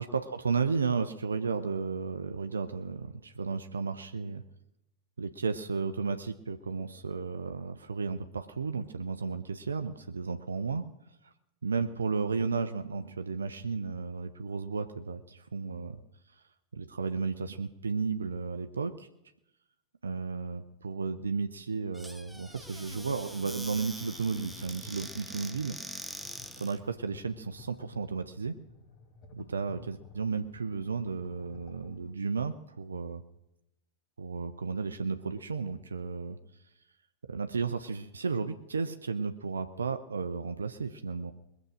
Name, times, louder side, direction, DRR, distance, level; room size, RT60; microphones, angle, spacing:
voice 1, 0.0-4.4 5.2-10.8 11.2-11.3 11.6-16.0 16.7-19.1 20.0-25.8 26.6-28.6 29.3-33.2 34.2-36.4 37.3-41.3, right 5 dB, 75° right, 8 dB, 0.6 m, -33 dB
Squeak / Cupboard open or close, 21.9-26.8, right 1 dB, ahead, 0.7 m, -44 dB
sound 1, 22.1-32.1, left 4 dB, 35° left, 1.9 m, -54 dB
21.0 x 7.3 x 6.5 m, 0.85 s
figure-of-eight pair, 90°, 0 cm